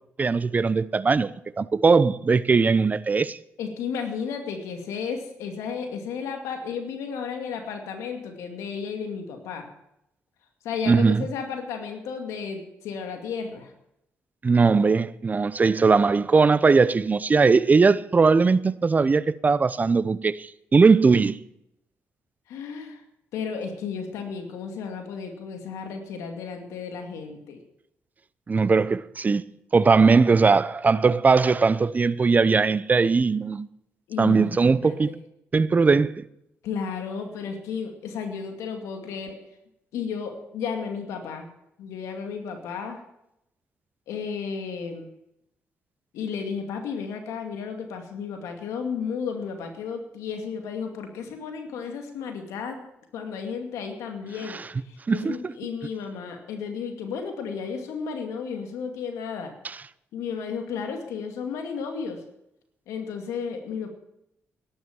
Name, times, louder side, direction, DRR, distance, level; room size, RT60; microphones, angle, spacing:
voice 1, 0.2-1.3 1.6-3.4 10.9-11.3 14.4-21.4 28.5-29.4 29.7-33.7 34.2-35.1 35.5-36.2 54.5-54.7 55.1-55.5 59.6-59.8, right 4 dB, 30° right, 0.8 m, -20 dB
voice 2, 3.6-9.7 10.6-13.7 22.5-23.0 23.3-27.6 34.1-35.2 36.6-39.4 39.9-41.5 41.8-43.0 44.1-45.1 46.1-52.8 53.1-54.6 54.9-59.5 60.1-62.2 62.9-63.9, left 6 dB, 85° left, 2.3 m, -33 dB
12.5 x 11.5 x 7.2 m
cardioid pair, 70°, 5 cm